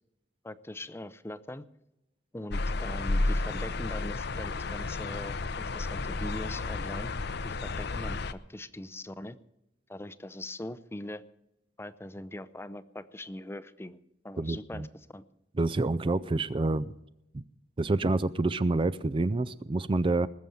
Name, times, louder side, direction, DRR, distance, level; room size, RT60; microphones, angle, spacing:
voice 1, 0.4-1.6 2.3-7.1 7.4-9.4 9.9-11.2 11.8-14.0 14.2-14.9 15.1-15.2, left 1 dB, 15° left, 15 dB, 0.6 m, -41 dB
sound 1, 2.5-8.3, left 2 dB, 60° left, 0.7 m, -32 dB
voice 2, 14.4-14.9 15.6-16.9 17.3-17.4 17.8-20.3, right 2 dB, 30° right, 15 dB, 0.4 m, -27 dB
20.0 x 7.0 x 7.7 m, 0.87 s
head